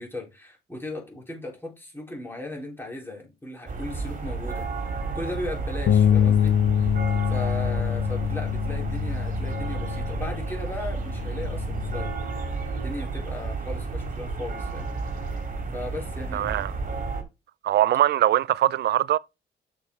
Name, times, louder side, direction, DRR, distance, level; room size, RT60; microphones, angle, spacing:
voice 1, 0.0-4.7 5.1-6.6 7.3-12.1 12.7-14.9 15.7-16.6, left 2 dB, 10° left, 3.7 m, -37 dB
sound 1, 3.7-17.2, right 4 dB, 40° right, 2.4 m, -32 dB
Bass guitar, 5.9-12.1, left 9 dB, 60° left, 0.6 m, -25 dB
voice 2, 16.3-16.7 17.6-19.2, right 12 dB, 60° right, 0.4 m, -22 dB
6.7 x 5.2 x 4.5 m
cardioid pair, 90°, 20 cm